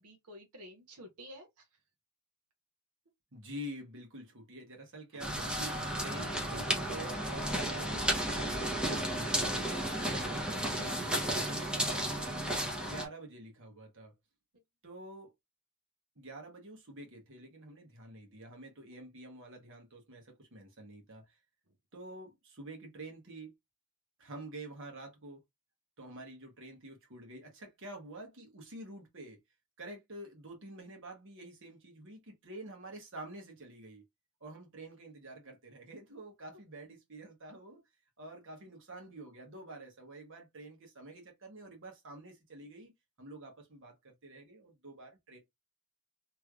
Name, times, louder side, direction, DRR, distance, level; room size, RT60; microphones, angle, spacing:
voice 1, 0.0-1.8 5.1-5.3 10.7-11.0, equal, 85° right, 1.0 m, -51 dB
voice 2, 3.3-9.9 10.2-14.1 14.8-15.3 16.1-21.4 21.9-23.5 24.2-25.4 26.0-29.4 29.8-34.0 34.4-37.8 38.2-42.9 43.2-45.4, right 1 dB, 60° right, 1.4 m, -48 dB
sound 1, 5.2-13.0, right 1 dB, 5° right, 0.9 m, -33 dB
3.2 x 3.0 x 2.4 m
head